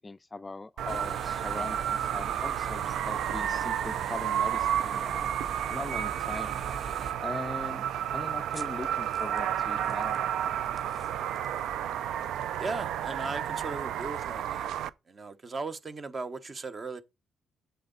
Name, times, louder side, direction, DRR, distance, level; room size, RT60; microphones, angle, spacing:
voice 1, 0.0-5.3 5.7-6.5 7.2-7.8 8.1-10.2, left 3 dB, 20° left, 0.4 m, -40 dB
sound 1, 0.8-14.9, right 10 dB, 80° right, 0.4 m, -31 dB
sound 2, 0.9-7.1, right 3 dB, 50° right, 1.9 m, -43 dB
sound 3, 5.0-13.2, right 1 dB, 10° right, 1.6 m, -58 dB
voice 2, 12.6-14.7 15.1-17.0, right 3 dB, 35° right, 1.0 m, -37 dB
7.7 x 7.0 x 3.9 m
cardioid pair, 90°, 0 cm